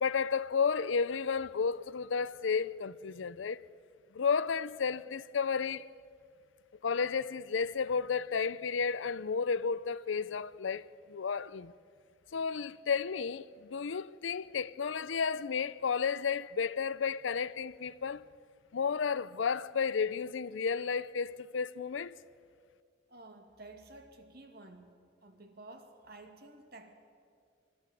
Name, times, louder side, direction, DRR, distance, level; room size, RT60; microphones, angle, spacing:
voice 1, 0.0-3.6 4.1-5.9 6.8-11.7 12.3-18.2 18.7-22.2, left 5 dB, 80° left, 0.5 m, -32 dB
voice 2, 23.1-24.9 25.2-26.9, right 2 dB, 55° right, 2.4 m, -52 dB
24.5 x 12.5 x 9.1 m
head